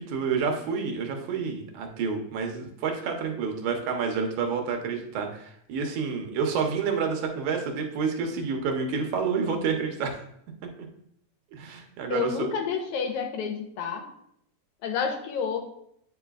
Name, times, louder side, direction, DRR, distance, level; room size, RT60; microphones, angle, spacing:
voice 1, 0.0-10.2 11.5-12.5, right 5 dB, 80° right, 3 dB, 2.3 m, -29 dB
voice 2, 12.1-14.1 14.8-15.6, left 7 dB, 85° left, 3 dB, 2.2 m, -29 dB
8.6 x 4.9 x 2.3 m, 0.71 s
omnidirectional pair, 3.3 m